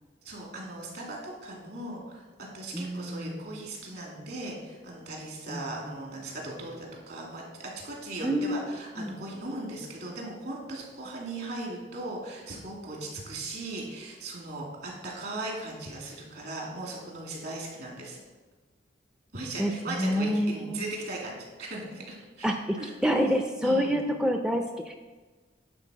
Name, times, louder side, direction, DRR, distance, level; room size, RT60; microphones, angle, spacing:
voice 1, 0.2-2.2 2.5-18.2 19.3-22.9 23.6-24.0, right 2 dB, 60° right, -1 dB, 2.4 m, -38 dB
voice 2, 2.7-3.4 5.5-5.9 8.2-8.5 9.0-9.2 19.6-20.8 22.4-22.8 23.0-24.9, equal, 5° right, 4 dB, 0.4 m, -27 dB
9.7 x 4.1 x 6.1 m, 1.3 s
head